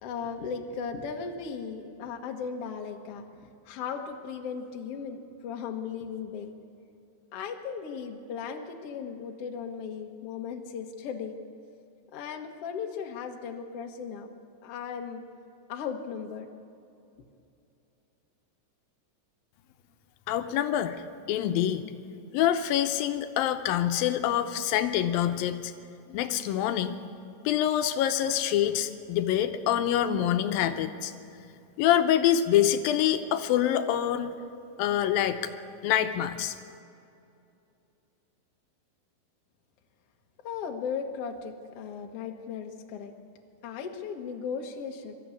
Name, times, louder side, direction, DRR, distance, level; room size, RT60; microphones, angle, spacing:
voice 1, 0.0-3.3 3.7-6.5 7.3-11.4 12.1-14.3 14.6-15.2 15.7-16.5 40.4-43.1 43.6-45.1, left 6 dB, 55° left, 3 dB, 1.8 m, -36 dB
voice 2, 20.3-21.0 21.3-21.9 22.3-25.7 26.1-27.0 27.5-31.1 31.8-34.3 34.8-35.5 35.8-36.5, left 11 dB, 85° left, 8 dB, 2.5 m, -26 dB
23.0 x 13.5 x 8.4 m, 2.6 s
omnidirectional pair, 4.2 m